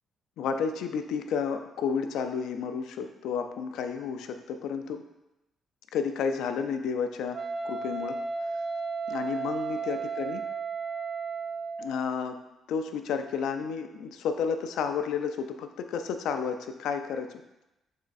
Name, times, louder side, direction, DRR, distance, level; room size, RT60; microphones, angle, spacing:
voice 1, 0.4-5.0 5.9-7.4 7.6-8.2 9.1-10.4 11.8-12.4 12.7-17.3, left 6 dB, 85° left, 7 dB, 0.3 m, -31 dB
Wind instrument woodwind instrument, 7.3-12.0, right 4 dB, 45° right, 0.3 m, -34 dB
3.6 x 3.2 x 3.9 m, 0.95 s
cardioid pair, 90°, 0 cm